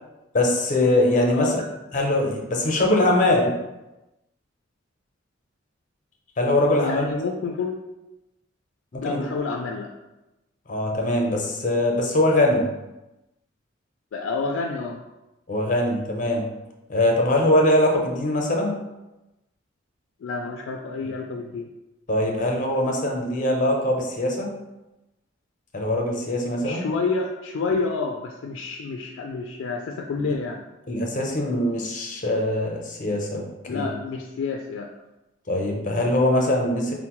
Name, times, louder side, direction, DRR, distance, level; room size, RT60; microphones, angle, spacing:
voice 1, 0.3-1.6 1.9-3.5 6.4-7.1 8.9-9.2 10.7-12.7 15.5-16.5 16.9-18.8 22.1-24.5 25.7-26.9 30.9-33.9 35.5-36.9, left 1 dB, 45° left, 1 dB, 0.6 m, -22 dB
voice 2, 6.8-7.8 9.0-9.9 14.1-15.0 20.2-21.7 26.6-30.6 33.7-34.9, left 4 dB, 90° left, 2 dB, 0.3 m, -29 dB
4.4 x 2.0 x 2.9 m, 1.0 s
head